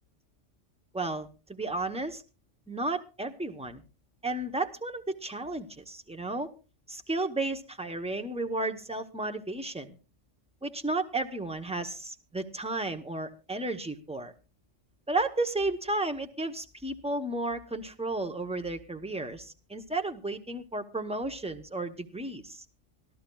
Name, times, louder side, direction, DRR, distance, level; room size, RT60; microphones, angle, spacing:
voice 1, 0.9-2.2 2.7-3.8 4.2-6.5 6.9-10.0 10.6-14.3 15.1-22.6, right 2 dB, 5° right, 7 dB, 0.7 m, -33 dB
25.0 x 13.0 x 2.3 m, 0.32 s
omnidirectional pair, 1.3 m